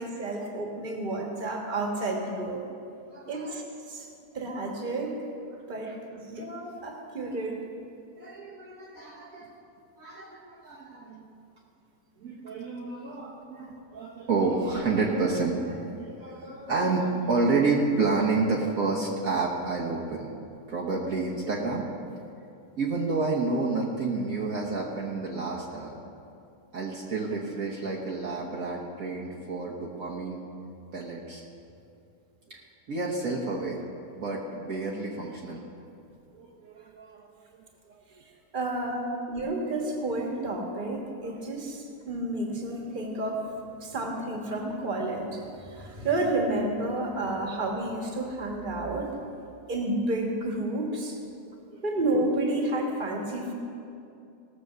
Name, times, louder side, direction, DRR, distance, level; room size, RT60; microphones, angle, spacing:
voice 1, 0.0-2.6 3.3-3.6 3.9-4.1 4.3-5.1 5.7-7.6 38.5-43.4 43.8-49.1 49.7-51.2 51.8-53.5, right 2 dB, 30° right, 1 dB, 1.6 m, -30 dB
voice 2, 3.1-3.6 5.9-6.0 6.3-6.4 8.2-9.6 10.0-11.2 12.2-20.3 20.7-21.9 22.8-25.9 26.7-30.4 30.9-31.4 32.5-32.6 32.9-33.8 34.1-35.6 36.3-37.3 38.9-39.2 39.6-39.8 51.7-51.8, right 3 dB, 55° right, -4 dB, 1.5 m, -30 dB
18.0 x 6.8 x 6.8 m, 2.6 s
omnidirectional pair, 1.8 m